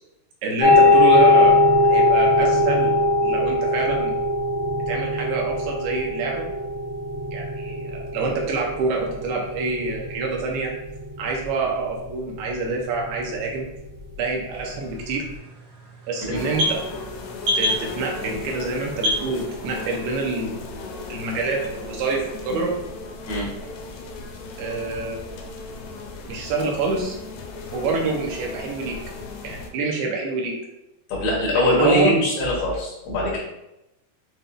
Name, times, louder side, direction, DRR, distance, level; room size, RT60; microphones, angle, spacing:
voice 1, 0.4-2.9 3.2-4.1 4.9-6.5 7.3-10.7 11.2-13.7 14.2-15.2 16.1-16.8 17.6-20.8 21.1-22.8 24.6-25.2 26.3-27.2 27.7-29.0 29.4-30.5 31.7-32.1, right 3 dB, 80° right, -1 dB, 2.6 m, -26 dB
sound 1, 0.6-15.4, left 2 dB, 55° left, 1.9 m, -21 dB
sound 2, 14.5-20.0, left 1 dB, 55° right, 2.0 m, -30 dB
sound 3, 16.3-29.7, left 3 dB, 90° left, 2.6 m, -36 dB
voice 2, 31.1-33.4, left 1 dB, 75° left, -4 dB, 3.1 m, -22 dB
7.8 x 2.7 x 2.3 m, 0.90 s
omnidirectional pair, 4.6 m